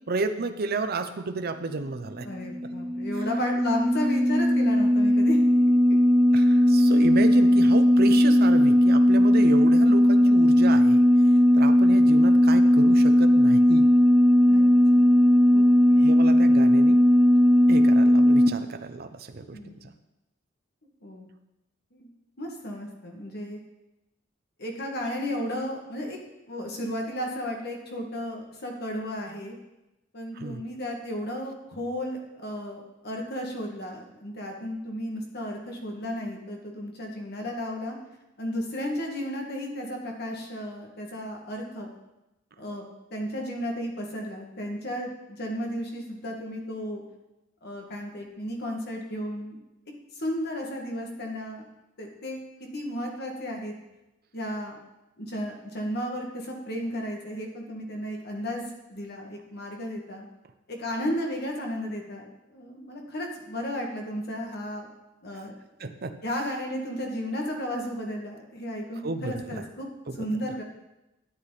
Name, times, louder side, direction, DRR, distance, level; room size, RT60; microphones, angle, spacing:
voice 1, 0.1-2.3 6.3-11.0 11.5-13.9 16.0-17.0 17.7-19.9 30.4-30.6 65.8-66.2 69.0-69.6, right 3 dB, 55° right, 7 dB, 0.7 m, -32 dB
voice 2, 2.2-5.4 6.4-6.5 14.4-14.7 15.0-15.1 15.5-16.1 19.5-19.7 21.0-21.3 21.9-22.1 22.4-23.6 24.6-26.2 26.5-29.6 30.1-38.0 38.4-41.9 42.6-42.8 43.1-47.0 47.6-49.5 50.2-51.6 52.0-52.4 52.7-53.7 54.3-54.7 55.2-60.3 60.7-64.9 65.2-65.6 66.2-69.9 70.2-70.6, equal, 55° left, 1 dB, 2.1 m, -34 dB
sound 1, 2.3-18.5, equal, 5° left, 0.8 m, -18 dB
12.5 x 8.4 x 4.2 m, 0.95 s
head